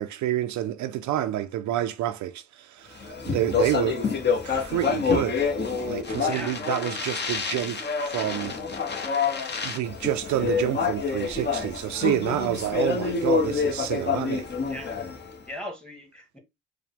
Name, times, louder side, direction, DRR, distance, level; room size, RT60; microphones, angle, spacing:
voice 1, 0.0-5.4 5.8-8.6 9.6-14.5, right 12 dB, 70° right, 0.4 m, -28 dB
Speech, 3.0-15.4, left 5 dB, 35° left, 1.0 m, -27 dB
voice 2, 6.1-6.6 14.6-15.0 15.5-16.4, equal, 5° left, 1.4 m, -39 dB
4.8 x 2.2 x 3.5 m
cardioid pair, 90°, 30 cm